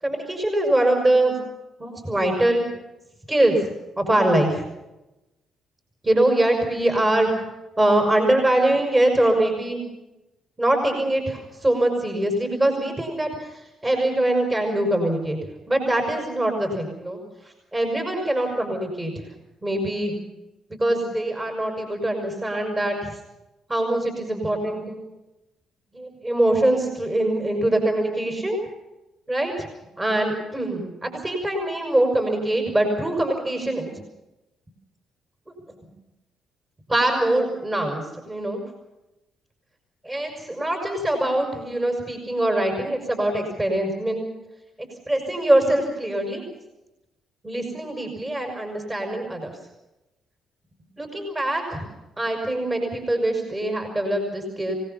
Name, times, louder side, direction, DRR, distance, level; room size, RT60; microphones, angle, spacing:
voice 1, 0.0-1.4 1.8-2.7 3.3-3.6 4.0-4.6 6.0-7.3 7.8-9.8 10.6-15.4 15.7-17.2 17.4-19.3 19.6-20.1 20.8-23.2 23.7-25.1 25.9-28.6 29.3-29.7 30.0-34.0 35.5-35.6 36.9-38.6 40.0-44.3 45.1-46.4 47.4-49.5 51.0-51.9 52.2-54.7, right 1 dB, 20° right, 3 dB, 6.2 m, -23 dB
27.5 x 19.0 x 5.7 m, 0.97 s
cardioid pair, 90°, 0 cm